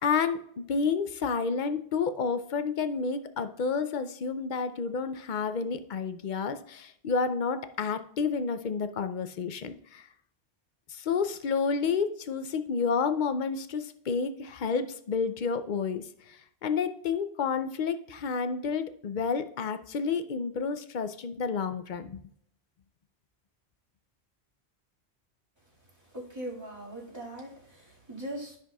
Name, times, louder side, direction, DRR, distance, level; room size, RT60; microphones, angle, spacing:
voice 1, 0.0-10.1 10.9-22.2, left 5 dB, 55° left, 11 dB, 0.6 m, -30 dB
voice 2, 26.1-28.6, right 1 dB, 25° right, -5 dB, 2.0 m, -40 dB
13.0 x 6.0 x 2.3 m, 0.70 s
omnidirectional pair, 1.1 m